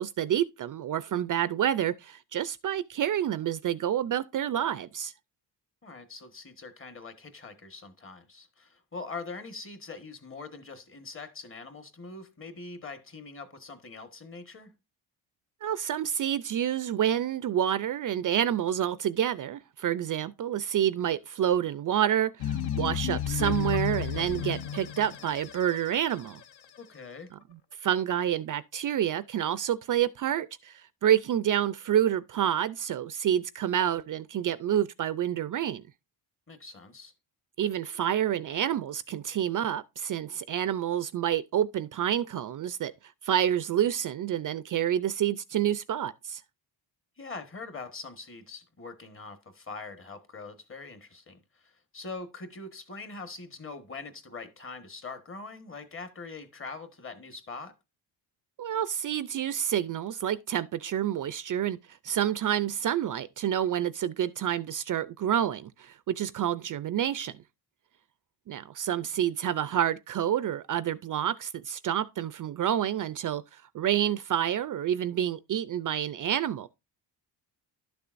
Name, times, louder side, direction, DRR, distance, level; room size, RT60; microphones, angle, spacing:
voice 1, 0.0-5.1 15.6-26.4 27.8-35.8 37.6-42.9 43.2-46.4 58.6-61.8 62.0-67.4 68.5-76.7, right 10 dB, 45° right, 0.5 m, -28 dB
voice 2, 5.8-14.7 26.8-27.3 36.5-37.1 47.2-57.8, left 3 dB, 30° left, 1.4 m, -43 dB
sound 1, 22.4-26.8, left 9 dB, 60° left, 0.9 m, -32 dB
11.5 x 6.8 x 2.5 m
cardioid pair, 145°, 44 cm